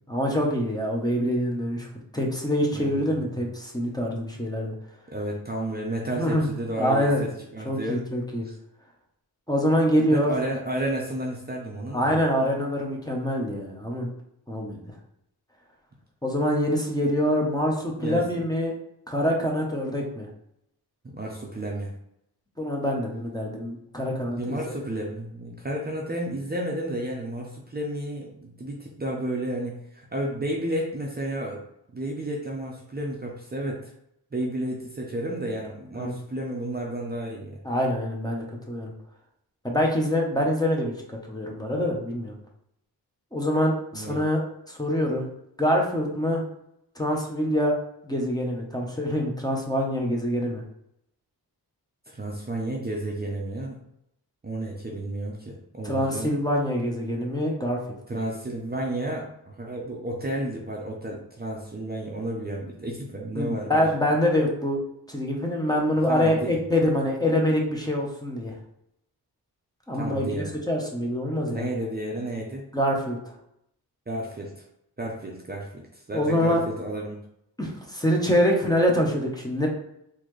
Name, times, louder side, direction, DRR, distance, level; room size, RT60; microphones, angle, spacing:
voice 1, 0.1-1.9 2.1-4.7 6.2-6.5 6.8-7.2 7.7-8.4 9.5-10.3 11.9-14.1 14.5-14.8 16.2-18.7 19.1-20.3 22.6-24.6 36.0-36.1 37.6-38.9 39.6-42.3 43.3-44.4 44.7-45.3 45.6-46.4 47.0-47.8 48.0-50.6 55.8-57.8 63.4-64.8 65.1-68.5 69.9-71.7 72.7-73.2 76.1-76.6 77.6-79.7, equal, 10° left, -1 dB, 1.0 m, -25 dB
voice 2, 5.1-8.0 8.4-8.5 10.1-12.1 18.0-18.4 21.0-21.9 24.4-31.6 31.9-33.9 34.3-37.6 43.9-44.2 52.1-53.8 54.4-56.3 58.1-63.8 66.1-66.6 69.9-70.5 71.3-72.6 74.1-74.6 75.0-77.2, right 1 dB, 25° right, -2 dB, 0.7 m, -32 dB
4.0 x 2.9 x 3.2 m, 0.76 s
wide cardioid pair, 75°, 40 cm